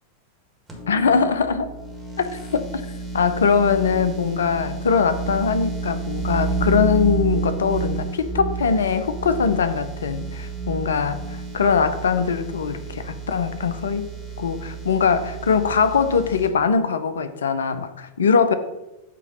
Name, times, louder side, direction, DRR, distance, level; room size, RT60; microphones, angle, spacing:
sound 1, 0.7-16.5, right 4 dB, 10° right, 1.8 m, -30 dB
voice 1, 0.9-1.7 2.2-2.6 3.1-14.1 14.4-18.5, left 6 dB, 65° left, 11 dB, 0.5 m, -22 dB
8.3 x 3.0 x 5.5 m, 1.0 s
figure-of-eight pair, 90°, 0 cm